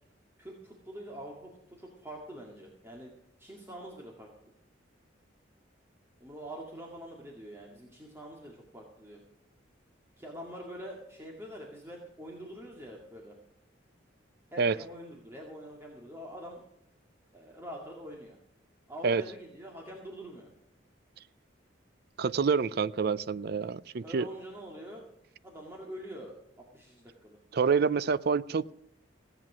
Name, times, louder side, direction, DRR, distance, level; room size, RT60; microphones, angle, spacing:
voice 1, 0.4-3.1 3.4-4.3 6.2-9.2 10.2-13.4 14.5-16.6 17.3-18.4 18.9-20.5 24.0-25.0 25.4-26.3 26.7-27.4, equal, 15° right, -2 dB, 2.1 m, -45 dB
voice 2, 22.2-24.3 27.5-28.7, right 5 dB, 55° right, 17 dB, 0.4 m, -27 dB
16.5 x 9.0 x 6.2 m, 0.75 s
head